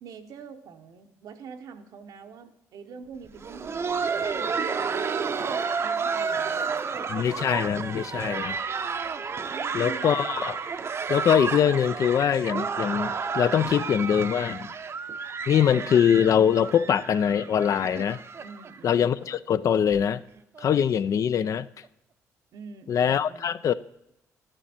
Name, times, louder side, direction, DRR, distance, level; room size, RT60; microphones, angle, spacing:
voice 1, 0.0-5.1 5.8-7.3 7.9-8.5 9.5-10.1 18.4-19.1 22.5-23.6, right 6 dB, 75° right, 7 dB, 0.9 m, -45 dB
Laughter, 3.3-18.9 19.2-19.3 19.9-20.0 20.6-20.8 21.8-21.9, right 5 dB, 45° right, 0.7 m, -31 dB
voice 2, 7.1-8.6 9.7-10.6 11.1-14.7 15.5-18.2 18.8-20.2 20.6-21.7 22.9-23.7, left 8 dB, 55° left, 15 dB, 0.4 m, -23 dB
11.0 x 9.0 x 4.3 m, 0.82 s
cardioid pair, 75°, 6 cm